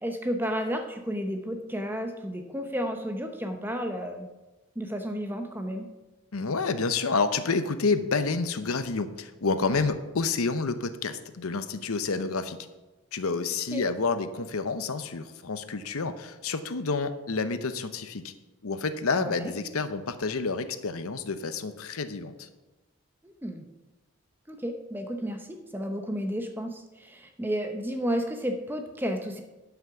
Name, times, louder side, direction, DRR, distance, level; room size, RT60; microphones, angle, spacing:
voice 1, 0.0-4.3 4.8-5.9 13.7-13.8 19.2-19.5 23.2-23.7 24.5-29.4, equal, 10° right, 5 dB, 0.7 m, -32 dB
voice 2, 6.3-12.6 13.1-18.3 18.6-22.5, left 4 dB, 80° left, 11 dB, 0.8 m, -29 dB
11.5 x 5.9 x 5.9 m, 1.1 s
head